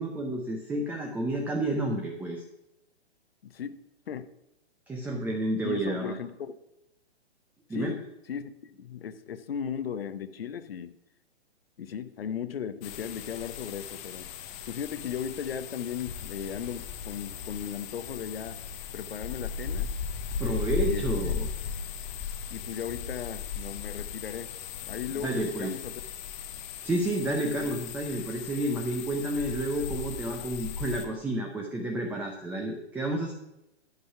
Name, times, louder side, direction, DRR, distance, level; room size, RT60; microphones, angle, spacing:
voice 1, 0.0-2.4 4.9-6.2 7.7-7.9 20.4-21.5 25.2-25.7 26.8-33.3, right 1 dB, 5° right, 1 dB, 0.7 m, -30 dB
voice 2, 3.4-3.8 4.1-4.3 5.6-6.6 7.7-10.9 11.8-14.3 14.7-18.6 18.9-19.9 20.8-21.1 22.5-24.5 24.9-25.9, left 8 dB, 60° left, 13 dB, 0.9 m, -36 dB
sound 1, 12.8-31.0, left 7 dB, 25° left, 0.8 m, -37 dB
11.5 x 5.4 x 5.7 m, 0.89 s
figure-of-eight pair, 130°, 33 cm